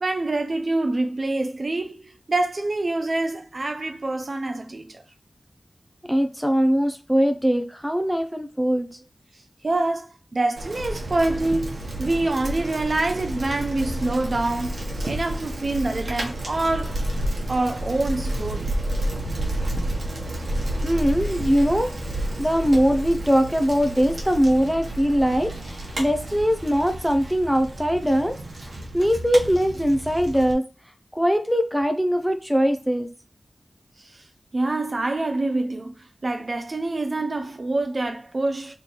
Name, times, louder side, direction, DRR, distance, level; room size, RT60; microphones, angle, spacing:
voice 1, 0.0-5.0 9.6-17.0 17.5-18.7 34.0-34.2 34.5-38.7, right 2 dB, 50° right, 0.5 m, -26 dB
voice 2, 6.1-8.9 20.8-21.9 22.4-28.4 28.7-30.6 31.1-33.1, equal, ahead, 0.6 m, -21 dB
Bicycle, 10.6-30.5, right 1 dB, 75° right, 1.1 m, -30 dB
3.2 x 3.0 x 4.2 m
wide cardioid pair, 90°, 0 cm